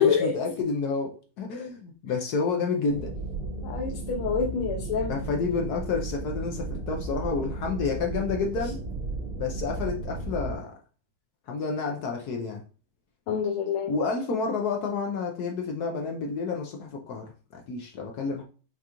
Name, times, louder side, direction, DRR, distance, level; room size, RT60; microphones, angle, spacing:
voice 1, 0.0-3.1 5.1-8.8 9.4-10.7 11.5-12.6 13.9-18.4, left 4 dB, 70° left, 0.9 m, -30 dB
sound 1, 2.9-10.6, right 3 dB, 75° right, 2.2 m, -34 dB
voice 2, 3.6-5.1 13.3-13.9, left 7 dB, 90° left, 1.6 m, -26 dB
5.9 x 2.4 x 2.9 m
omnidirectional pair, 2.3 m